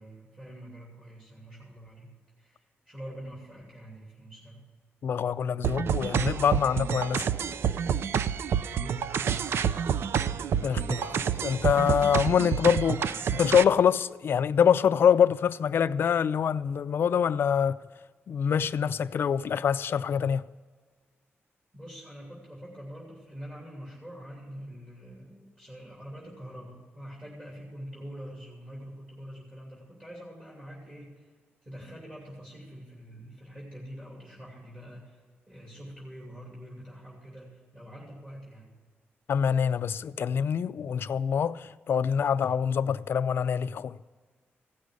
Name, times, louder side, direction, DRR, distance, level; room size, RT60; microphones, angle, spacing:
voice 1, 0.0-2.1 2.4-4.6 8.6-9.6 21.7-31.3 31.6-35.2 35.5-38.7, equal, 20° right, 2.8 m, -45 dB
voice 2, 5.0-7.3 10.6-17.8 18.3-20.4 39.3-43.9, left 7 dB, 60° left, 0.4 m, -25 dB
sound 1, 5.6-13.6, right 8 dB, 75° right, 0.4 m, -28 dB
15.5 x 6.3 x 8.1 m
wide cardioid pair, 120°, 4 cm